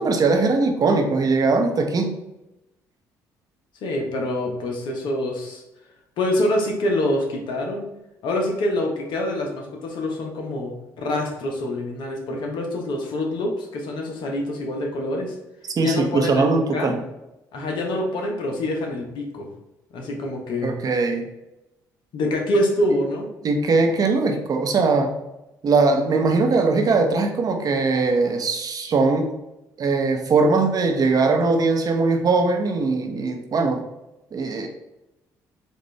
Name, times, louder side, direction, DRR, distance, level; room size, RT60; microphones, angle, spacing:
voice 1, 0.0-2.1 15.8-17.0 20.6-21.3 23.4-25.1 25.6-29.3 29.8-33.8 34.3-34.7, right 3 dB, 45° right, 4 dB, 0.8 m, -20 dB
voice 2, 3.8-5.6 6.2-7.8 8.2-10.7 11.0-15.4 15.8-17.0 17.5-19.5 19.9-20.7 22.1-23.3, left 1 dB, 65° left, 1 dB, 1.0 m, -25 dB
4.2 x 2.6 x 3.3 m, 0.92 s
hypercardioid pair, 55°, 9 cm